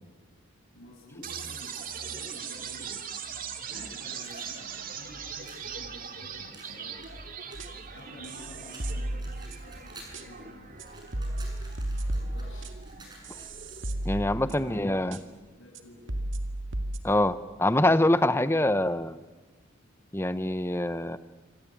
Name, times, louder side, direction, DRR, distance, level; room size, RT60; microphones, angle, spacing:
voice 1, 0.7-3.2 3.7-7.0 7.9-10.7 12.1-13.1 14.3-16.3, left 1 dB, 70° left, -3 dB, 6.4 m, -50 dB
sound 1, 1.2-15.2, right 6 dB, 45° right, 2.4 m, -41 dB
sound 2, 4.1-5.7 6.5-8.3 8.6-10.2 10.6-14.1, right 2 dB, 20° right, 7.1 m, -52 dB
sound 3, 7.5-7.9 8.2-9.8 10.1-10.2 10.8-10.9 11.1-14.8 15.1-15.2 15.7-15.8 16.1-17.0, right 1 dB, 65° right, 2.1 m, -34 dB
voice 2, 14.0-15.2 17.0-19.2 20.1-21.2, left 1 dB, 10° left, 13 dB, 0.9 m, -25 dB
27.0 x 25.0 x 8.7 m, 1.2 s
head